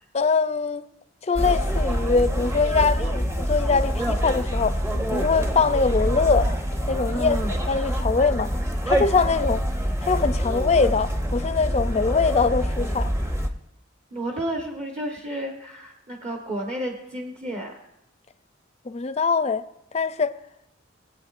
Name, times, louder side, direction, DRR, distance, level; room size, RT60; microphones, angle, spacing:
voice 1, 0.1-0.8 1.2-4.8 5.1-6.5 6.9-7.4 7.7-8.5 8.9-9.6 10.0-13.1 18.9-19.6 19.9-20.4, left 4 dB, 35° left, 0.4 m, -22 dB
sound 1, 1.4-13.5, equal, 15° right, 0.8 m, -25 dB
voice 2, 7.1-7.6 14.1-17.8, right 1 dB, 35° right, 1.2 m, -31 dB
20.5 x 8.5 x 2.5 m
head